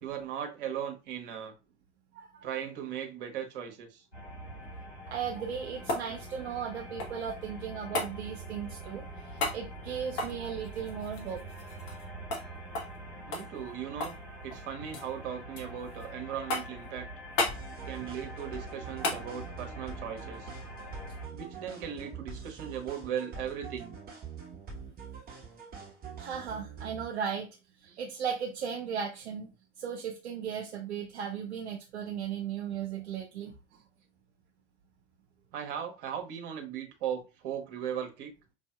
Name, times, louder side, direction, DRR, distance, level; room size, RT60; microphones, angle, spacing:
voice 1, 0.0-1.5 2.4-4.0 9.2-9.3 13.3-14.2 14.4-17.1 17.8-20.5 21.3-23.9 27.9-28.0 35.5-38.3, right 9 dB, 50° right, 1.0 m, -38 dB
voice 2, 2.1-2.5 5.1-11.4 26.2-27.5 27.8-29.5 29.8-33.5, right 7 dB, 70° right, 0.6 m, -36 dB
sound 1, 4.1-21.3, right 1 dB, 80° left, 1.7 m, -45 dB
sound 2, 5.3-7.3 7.9-8.1 9.4-9.6 10.1-12.1 12.3-12.5 12.7-13.0 13.3-14.2 14.5-15.1 15.6-16.1 16.5-16.9 17.4-17.6 19.0-19.2 21.6-21.7, left 2 dB, 45° left, 1.0 m, -34 dB
sound 3, 17.5-27.1, right 5 dB, 25° right, 1.1 m, -45 dB
4.8 x 2.6 x 2.2 m
figure-of-eight pair, 75°, 34 cm